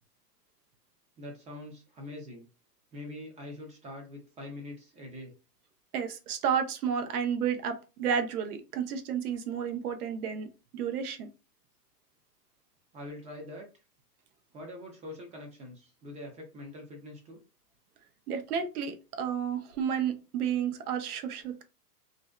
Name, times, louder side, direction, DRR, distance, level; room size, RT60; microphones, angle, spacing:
voice 1, 1.2-2.5 2.9-5.3 12.9-13.7 14.5-17.4, left 1 dB, 15° right, 2 dB, 0.5 m, -44 dB
voice 2, 5.9-10.5 10.7-11.3 18.3-21.6, right 7 dB, 70° right, 7 dB, 0.7 m, -31 dB
2.6 x 2.1 x 2.2 m, 0.30 s
hypercardioid pair, 125°, 47 cm